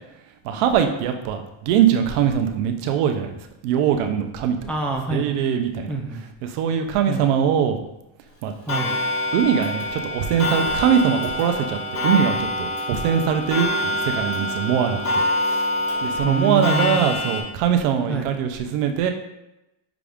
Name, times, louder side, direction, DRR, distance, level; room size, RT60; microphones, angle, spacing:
voice 1, 0.4-3.3 3.6-4.6 5.1-5.9 6.5-7.8 8.4-8.5 9.3-15.2 15.5-15.6 16.0-19.1, right 8 dB, 85° right, 6 dB, 0.7 m, -22 dB
voice 2, 4.7-5.3 5.9-6.2 7.1-7.3 8.7-9.0 16.2-17.0 18.1-18.3, right 3 dB, 5° left, -1 dB, 0.4 m, -26 dB
Clock, 8.7-17.4, left 1 dB, 30° left, 1.3 m, -25 dB
5.9 x 2.5 x 3.5 m, 0.90 s
cardioid pair, 125°, 47 cm